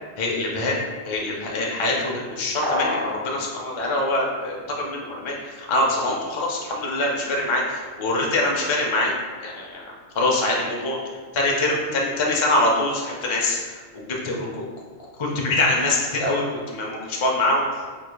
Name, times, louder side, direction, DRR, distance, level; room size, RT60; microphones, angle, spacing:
voice 1, 0.2-0.7 1.1-9.1 9.4-11.0 11.3-14.7 15.2-18.0, left 2 dB, 40° left, -2 dB, 0.4 m, -24 dB
sound 1, 2.6-3.2, left 2 dB, 25° right, 1.4 m, -25 dB
4.7 x 2.9 x 2.2 m, 1.5 s
omnidirectional pair, 1.1 m